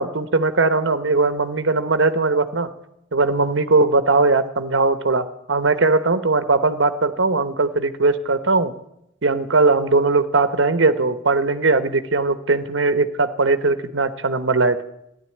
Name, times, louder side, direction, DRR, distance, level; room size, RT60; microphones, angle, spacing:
voice 1, 0.0-2.7 3.1-8.7 9.2-14.8, right 3 dB, 65° right, 11 dB, 1.0 m, -19 dB
14.5 x 11.0 x 8.6 m, 0.80 s
head